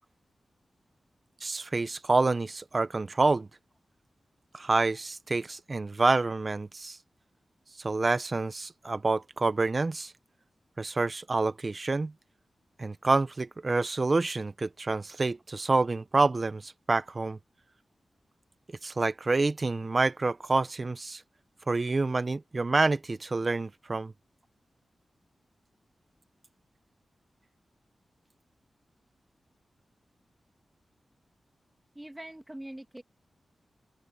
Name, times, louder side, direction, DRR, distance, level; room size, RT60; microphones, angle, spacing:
voice 1, 1.4-3.5 4.5-7.0 7.8-10.1 10.8-12.1 12.8-17.4 18.8-21.2 21.7-24.1, right 3 dB, 45° right, 1.2 m, -27 dB
voice 2, 32.0-33.0, right 1 dB, 15° right, 2.1 m, -43 dB
open air
cardioid pair, 50°, 0 cm